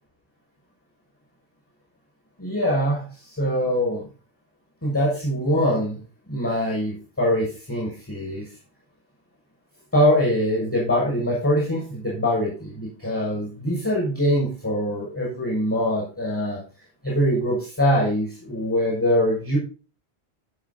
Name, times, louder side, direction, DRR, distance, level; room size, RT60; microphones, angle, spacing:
voice 1, 2.4-4.1 4.8-6.0 6.3-8.4 9.9-16.6 17.0-19.6, equal, 10° left, -4 dB, 6.7 m, -23 dB
14.0 x 6.8 x 4.2 m, 0.34 s
omnidirectional pair, 1.1 m